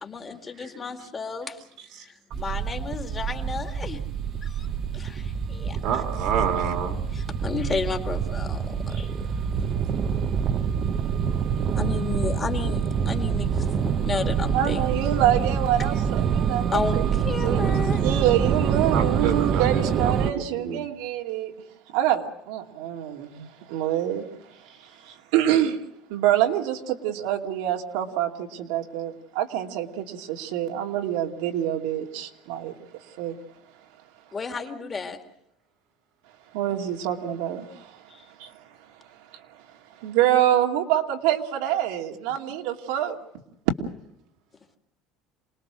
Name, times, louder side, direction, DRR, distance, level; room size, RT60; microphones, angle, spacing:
voice 1, 0.0-1.6 2.0-4.0 4.4-4.7 4.9-6.0 7.1-9.3 9.6-9.7 11.7-14.8 16.7-18.0 34.3-35.2 38.1-38.2, left 4 dB, 15° left, 2.1 m, -32 dB
sound 1, 2.3-20.3, right 7 dB, 30° right, 0.9 m, -26 dB
voice 2, 5.8-7.0 18.9-19.6 20.3-20.8, right 7 dB, 55° right, 2.1 m, -27 dB
voice 3, 14.5-17.0 17.4-21.5 21.9-24.2 25.3-25.8 26.1-32.7 33.2-33.3 36.5-37.9 38.4-38.5 40.0-43.2, right 11 dB, 85° right, 2.6 m, -26 dB
27.5 x 20.5 x 6.2 m
cardioid pair, 180°, 0 cm